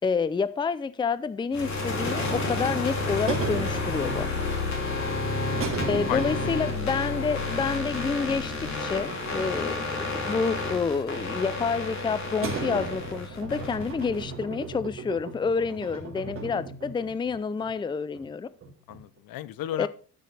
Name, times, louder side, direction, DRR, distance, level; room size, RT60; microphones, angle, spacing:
voice 1, 0.0-4.4 5.9-8.5 8.8-18.5 19.8-19.9, left 5 dB, 15° left, 0.5 m, -28 dB
sound 1, 1.5-14.3, left 3 dB, 50° left, 3.0 m, -30 dB
sound 2, 3.3-4.6 5.6-6.9 7.2-7.3 8.5-9.8 10.0-10.9 12.4-17.4 17.6-17.7 18.1-18.2 18.6-19.2, right 4 dB, 35° right, 3.1 m, -36 dB
voice 2, 5.0-5.8 6.1-6.5 18.9-19.9, left 13 dB, 75° left, 0.8 m, -35 dB
12.5 x 6.3 x 3.3 m
cardioid pair, 125°, 35 cm